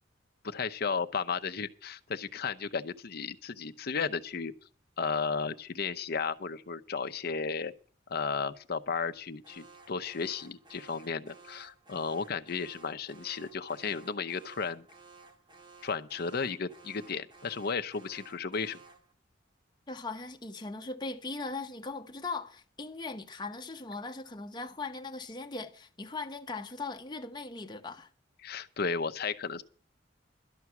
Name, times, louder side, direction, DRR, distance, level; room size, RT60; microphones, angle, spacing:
voice 1, 0.4-4.5 5.0-7.7 8.1-14.9 15.8-18.8 28.4-29.6, left 5 dB, 60° left, 0.7 m, -34 dB
Alarm, 9.4-19.1, right 4 dB, 25° right, 1.7 m, -55 dB
voice 2, 19.9-28.1, left 3 dB, 25° left, 1.0 m, -39 dB
12.5 x 6.0 x 9.3 m
head